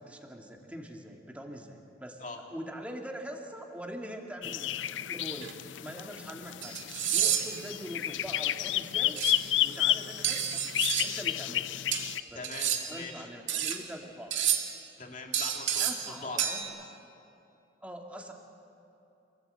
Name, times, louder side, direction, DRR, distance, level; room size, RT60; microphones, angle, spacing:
voice 1, 0.0-2.2 2.5-6.8 7.1-9.2 9.6-10.6 11.0-11.7 12.3-12.5 12.9-14.3 15.8-16.7 17.8-18.3, equal, 5° right, 1 dB, 1.9 m, -43 dB
sound 1, 4.4-12.2, left 12 dB, 80° left, 0.5 m, -32 dB
sound 2, 5.4-5.5 6.6-7.7 9.2-9.4 10.2-11.2 11.9-13.0 13.5-13.8 14.3-14.8 15.3-16.1 16.4-16.6, right 9 dB, 80° right, 1.9 m, -30 dB
voice 2, 12.3-13.3 15.0-16.4, left 3 dB, 45° left, 1 dB, 2.5 m, -42 dB
27.5 x 17.5 x 7.9 m, 2.8 s
head